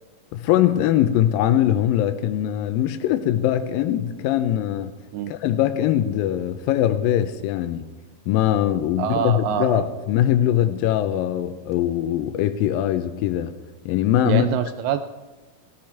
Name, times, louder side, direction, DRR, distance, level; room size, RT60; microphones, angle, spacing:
voice 1, 0.3-4.9 5.3-7.9 8.3-13.5 13.9-14.5, left 11 dB, 90° left, 2.4 m, -21 dB
voice 2, 9.0-9.9 14.2-15.0, right 11 dB, 80° right, 2.1 m, -25 dB
16.5 x 13.5 x 4.6 m
omnidirectional pair, 4.0 m